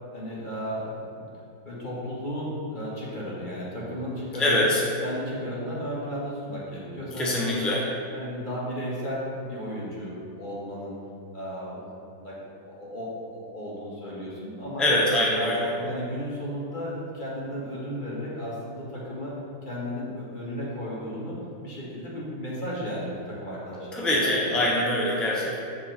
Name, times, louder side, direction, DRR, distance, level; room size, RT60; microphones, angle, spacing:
voice 1, 0.1-1.3 1.7-4.7 5.0-7.8 8.1-11.0 11.3-11.8 12.1-12.4 12.6-14.9 15.3-19.3 19.7-21.4 21.6-24.6, equal, 25° left, -7 dB, 2.1 m, -34 dB
voice 2, 4.4-4.8 7.1-7.8 14.8-15.7 23.9-25.6, left 1 dB, ahead, -4 dB, 0.6 m, -23 dB
13.5 x 4.7 x 4.3 m, 2.6 s
omnidirectional pair, 2.0 m